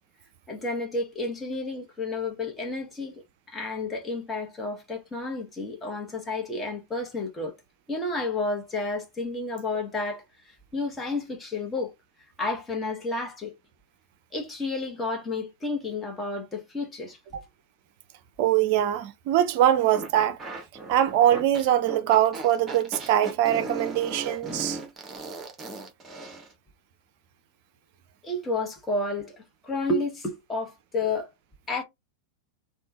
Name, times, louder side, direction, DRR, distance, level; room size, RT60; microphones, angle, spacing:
voice 1, 0.5-3.1 3.5-7.5 7.9-10.2 10.7-11.9 12.4-13.5 14.3-17.2 28.2-29.3 29.6-31.3 31.7-31.8, left 2 dB, 15° left, 1.1 m, -31 dB
voice 2, 18.4-20.4 20.9-24.8, right 12 dB, 45° right, 0.5 m, -22 dB
sound 1, 19.9-26.5, right 3 dB, 20° right, 1.0 m, -37 dB
3.4 x 2.3 x 2.8 m
figure-of-eight pair, 90°, 0 cm